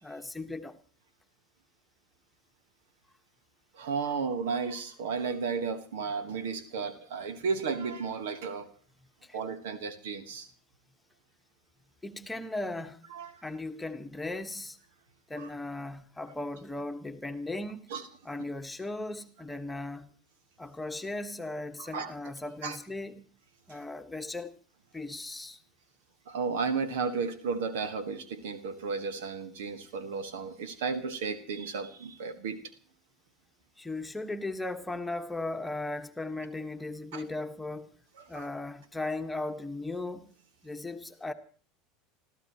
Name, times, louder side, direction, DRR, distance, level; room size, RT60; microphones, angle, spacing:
voice 1, 0.0-0.7 9.2-9.4 12.0-13.0 13.4-14.8 15.3-17.9 18.2-20.1 20.6-23.2 23.7-24.5 24.9-25.6 33.8-37.9 38.3-40.3 40.6-41.3, left 2 dB, 10° left, 1.4 m, -37 dB
voice 2, 3.7-8.7 9.3-10.5 13.1-13.4 15.3-15.5 17.9-18.1 21.8-22.1 22.6-22.8 23.7-23.8 26.3-32.6 37.1-37.2 38.2-38.5, right 5 dB, 70° right, 1.5 m, -33 dB
29.0 x 14.5 x 3.1 m
hypercardioid pair, 75°, 0 cm